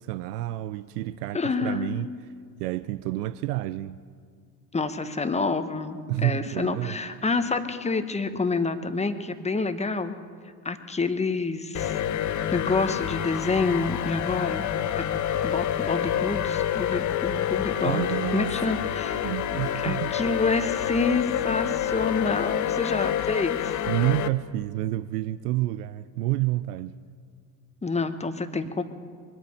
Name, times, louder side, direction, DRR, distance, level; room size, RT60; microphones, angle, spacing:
voice 1, 0.0-2.1 2.6-4.0 6.1-7.0 17.8-20.2 23.9-27.0, right 16 dB, 70° right, 0.6 m, -29 dB
voice 2, 1.3-2.0 4.7-10.1 10.6-11.9 12.3-14.6 15.0-18.1 18.3-23.8 27.8-28.8, left 4 dB, 15° left, 1.2 m, -28 dB
sound 1, 11.7-24.3, left 10 dB, 35° left, 0.8 m, -28 dB
23.0 x 8.6 x 6.6 m
hypercardioid pair, 70°, 49 cm